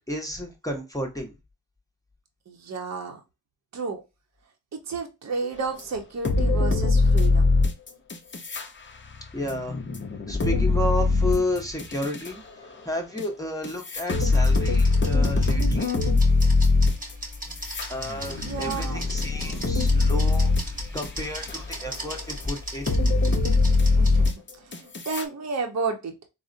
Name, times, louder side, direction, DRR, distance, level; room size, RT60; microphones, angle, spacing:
voice 1, 0.1-1.3 9.3-9.8 10.3-12.4 12.8-15.9 17.9-20.5 20.9-22.9, left 1 dB, 10° left, 1 dB, 0.9 m, -31 dB
voice 2, 2.5-3.2 3.7-4.0 4.9-7.6 18.2-19.0 24.0-26.1, right 4 dB, 45° right, 3 dB, 0.8 m, -32 dB
sound 1, 5.8-5.9 6.2-8.7 9.0-12.3 13.2-13.3 13.6-21.1 21.5-22.0 22.4-22.5 22.9-25.2, left 3 dB, 30° left, 0.6 m, -22 dB
sound 2, 14.1-24.3, equal, 20° right, 1.1 m, -38 dB
3.6 x 2.1 x 2.5 m, 0.26 s
cardioid pair, 60°, 37 cm